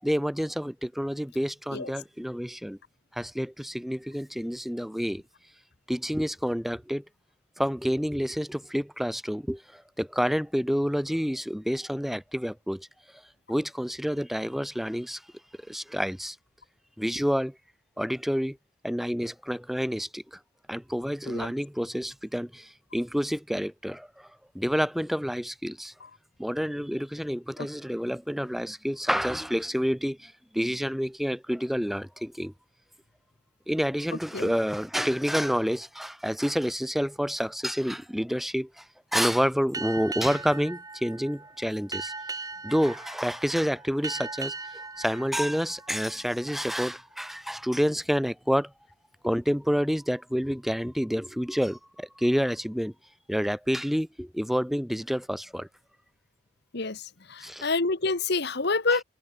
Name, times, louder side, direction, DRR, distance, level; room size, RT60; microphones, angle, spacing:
voice 1, 0.0-2.8 3.1-5.2 5.9-7.0 7.6-12.9 13.5-15.2 15.7-16.4 17.0-17.6 18.0-18.6 18.8-20.4 20.7-24.3 24.5-25.9 26.4-32.5 33.7-38.8 39.1-42.1 42.6-44.5 45.0-48.7 49.2-52.9 53.3-55.7 57.4-57.7, equal, ahead, 1.5 m, -28 dB
Boat Water vehicle, 39.7-46.8, right 4 dB, 15° right, 5.2 m, -39 dB
voice 2, 56.7-59.0, left 3 dB, 50° left, 1.2 m, -28 dB
head